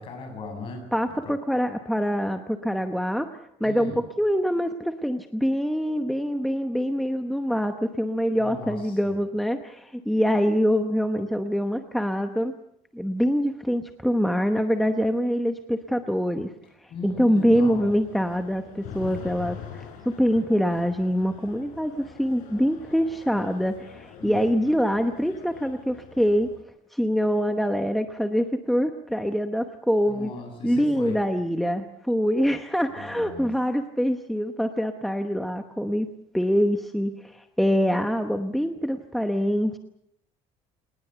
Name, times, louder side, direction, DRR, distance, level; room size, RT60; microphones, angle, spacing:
voice 1, 0.0-0.9 1.2-1.3 3.6-4.0 8.4-9.1 16.9-17.9 24.2-24.4 30.1-31.2 32.9-33.5, left 3 dB, 40° left, 5 dB, 7.8 m, -38 dB
voice 2, 0.9-12.5 12.9-16.5 17.0-26.5 26.9-30.3 30.6-36.1 36.3-39.8, equal, ahead, 6 dB, 0.9 m, -25 dB
sound 1, 17.5-26.6, left 7 dB, 75° left, 5.4 m, -44 dB
27.0 x 19.5 x 6.9 m, 0.75 s
cardioid pair, 175°, 14 cm